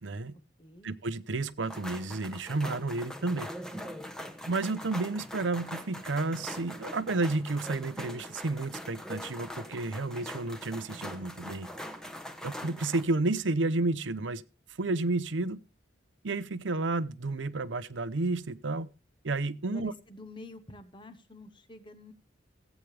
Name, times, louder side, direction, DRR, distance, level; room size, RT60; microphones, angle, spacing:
voice 1, 0.0-0.3 0.8-3.5 4.5-11.7 12.4-14.4 14.8-15.6 16.2-18.9 19.2-19.9, right 3 dB, 80° right, 0.7 m, -31 dB
voice 2, 0.6-0.9 19.6-22.1, left 1 dB, 25° left, 1.1 m, -48 dB
sound 1, 1.6-13.0, equal, 5° left, 1.1 m, -42 dB
17.5 x 8.4 x 3.3 m
head